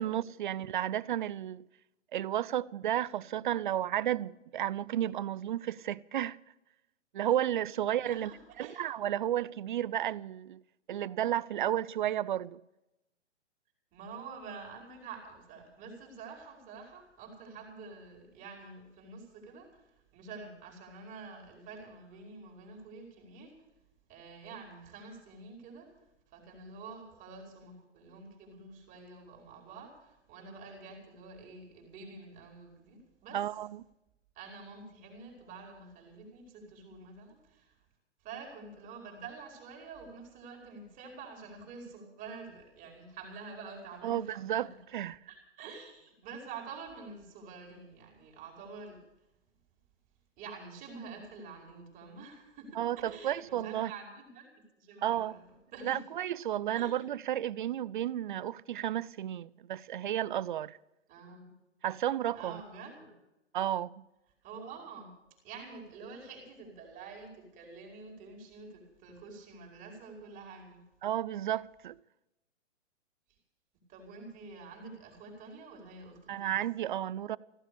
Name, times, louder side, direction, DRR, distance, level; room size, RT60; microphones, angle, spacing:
voice 1, 0.0-1.7 2.1-6.4 7.1-8.3 8.6-10.6 10.9-12.6 33.3-33.8 44.0-45.2 52.8-53.9 55.0-55.4 55.8-60.8 61.8-62.6 63.5-64.0 71.0-72.0 76.3-77.4, right 11 dB, 40° right, 0.5 m, -32 dB
voice 2, 8.1-8.9 13.9-23.5 24.1-25.9 26.3-33.4 34.3-37.8 38.2-44.7 45.3-49.0 50.4-55.5 55.7-56.0 56.7-56.9 61.1-61.5 62.3-63.1 64.4-65.1 65.4-70.8 73.9-76.6, right 4 dB, 20° right, 4.7 m, -48 dB
15.5 x 13.0 x 6.8 m
hypercardioid pair, 140°, 37 cm